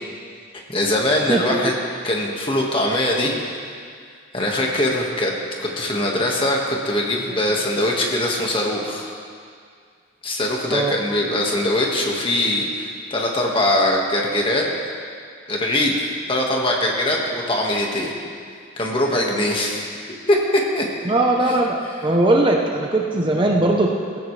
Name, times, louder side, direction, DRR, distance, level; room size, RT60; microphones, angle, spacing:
voice 1, 0.7-1.7 2.0-3.6 4.3-5.3 5.6-9.1 10.2-14.7 15.5-15.9 16.3-18.2 18.8-19.9 20.3-20.9, left 1 dB, 25° left, -1 dB, 1.8 m, -21 dB
voice 2, 21.0-23.9, right 2 dB, 25° right, 1 dB, 0.9 m, -19 dB
19.0 x 15.5 x 3.4 m, 2.2 s
head